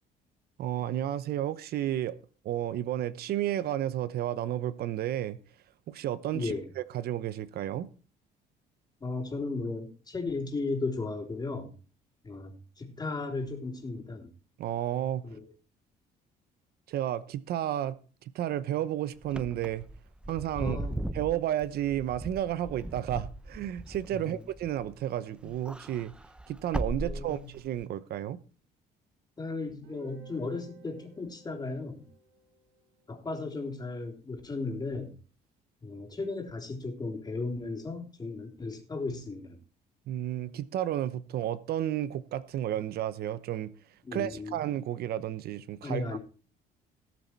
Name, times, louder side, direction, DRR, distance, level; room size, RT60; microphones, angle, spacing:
voice 1, 0.6-2.1 2.4-5.4 5.9-7.9 14.6-15.2 16.9-18.0 18.3-19.8 20.3-20.8 21.1-26.1 26.5-28.4 40.1-43.7 44.1-46.0, right 12 dB, 65° right, 0.9 m, -32 dB
voice 2, 6.3-6.7 9.0-11.7 12.2-14.3 15.2-15.5 20.6-21.0 24.1-24.4 27.0-27.5 29.4-32.1 33.1-35.1 35.8-39.6 44.0-44.6 45.8-46.2, left 3 dB, 25° left, 3.6 m, -35 dB
Wind / Car, 19.2-25.1 25.4-27.8, right 1 dB, 5° right, 0.6 m, -38 dB
Guitar, 29.8-33.7, right 2 dB, 85° right, 4.4 m, -56 dB
18.0 x 7.0 x 4.6 m
cardioid pair, 110°, 17 cm